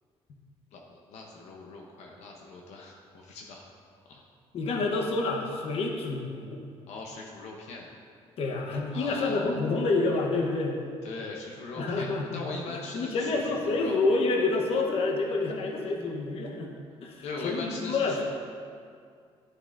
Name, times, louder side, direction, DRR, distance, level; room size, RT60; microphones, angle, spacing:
voice 1, 0.7-3.6 4.1-4.2 6.9-7.9 8.9-9.6 11.0-14.0 17.2-18.2, left 3 dB, 85° left, -1 dB, 0.8 m, -40 dB
voice 2, 4.5-6.6 8.4-10.8 11.8-12.5 12.9-16.7 17.0-18.2, left 3 dB, 60° left, 1 dB, 1.0 m, -28 dB
11.0 x 6.5 x 2.5 m, 2.2 s
cardioid pair, 135°, 11 cm